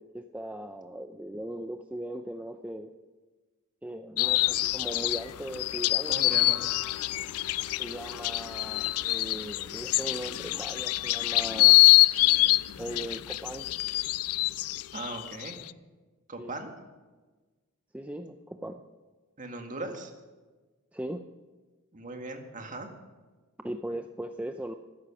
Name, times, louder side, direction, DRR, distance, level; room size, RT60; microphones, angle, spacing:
voice 1, 0.0-2.9 3.8-6.3 7.8-11.8 12.8-13.7 16.4-16.5 17.9-18.8 20.9-21.3 23.6-24.7, right 1 dB, 5° right, 6 dB, 0.5 m, -38 dB
sound 1, 4.2-15.7, left 18 dB, 75° left, 0.4 m, -25 dB
voice 2, 6.1-6.6 14.9-15.6 16.3-16.7 19.4-20.1 21.9-22.9, right 2 dB, 35° right, 4 dB, 1.8 m, -38 dB
15.0 x 12.5 x 5.9 m, 1.3 s
head